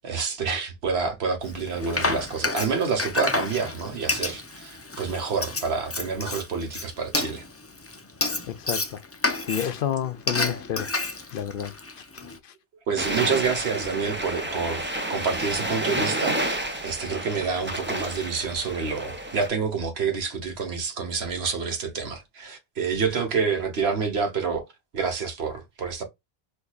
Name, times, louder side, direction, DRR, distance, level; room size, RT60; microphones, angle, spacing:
voice 1, 0.0-7.4 12.9-24.7 24.9-26.0, right 5 dB, 85° right, 1.3 m, -28 dB
Frying (food), 1.5-12.4, left 3 dB, 25° left, 0.3 m, -30 dB
voice 2, 8.5-9.0 9.4-11.7 12.4-12.5, left 9 dB, 65° left, 0.7 m, -30 dB
sound 1, 13.0-19.5, right 1 dB, 15° right, 0.7 m, -30 dB
4.5 x 2.6 x 2.3 m
omnidirectional pair, 1.1 m